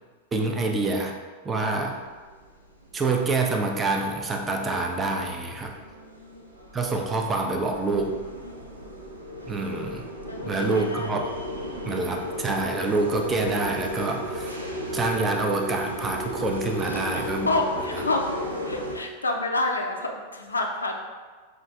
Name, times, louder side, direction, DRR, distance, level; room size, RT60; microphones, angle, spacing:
voice 1, 0.3-1.1 1.4-2.0 2.9-5.7 6.7-8.2 9.5-10.0 10.4-11.3 11.8-14.6 14.9-17.5, right 3 dB, 20° right, 2 dB, 0.4 m, -26 dB
sound 1, 1.8-18.9, left 1 dB, 80° right, 0.4 m, -35 dB
voice 2, 5.8-6.5 8.4-9.0 10.3-11.2 16.8-18.4 18.6-20.9, left 2 dB, 75° left, 2 dB, 0.4 m, -29 dB
5.3 x 2.4 x 2.3 m, 1.4 s
figure-of-eight pair, 90°, 0 cm